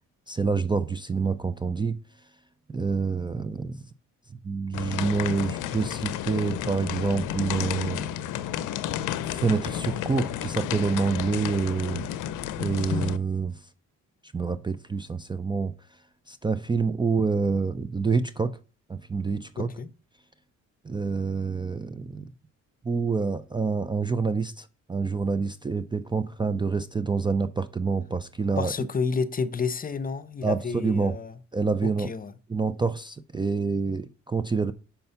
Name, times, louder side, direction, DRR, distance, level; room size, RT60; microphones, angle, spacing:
voice 1, 0.3-2.0 2.7-3.8 4.4-8.0 9.2-12.1 12.6-13.7 14.3-15.7 16.3-18.6 18.9-19.7 20.8-22.3 22.8-28.7 30.4-31.1 31.5-32.1 32.5-34.7, right 4 dB, 15° right, 0.4 m, -27 dB
sound 1, 4.7-13.2, left 10 dB, 85° left, 0.6 m, -32 dB
voice 2, 19.6-19.9 28.6-31.3 31.8-32.3, left 5 dB, 30° left, 0.6 m, -30 dB
5.8 x 5.4 x 5.5 m
cardioid pair, 90°, 30 cm